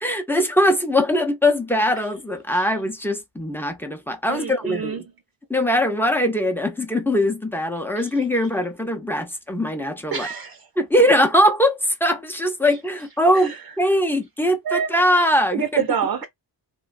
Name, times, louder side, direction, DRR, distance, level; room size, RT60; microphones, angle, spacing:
voice 1, 0.0-5.1 5.5-10.3 10.8-15.8, equal, 5° left, 0.5 m, -21 dB
voice 2, 4.3-5.0 8.0-8.1 10.1-10.7 13.3-13.6 14.6-15.0 15.5-16.2, right 8 dB, 55° right, 0.5 m, -27 dB
3.1 x 2.3 x 2.5 m
wide cardioid pair, 130°, 45 cm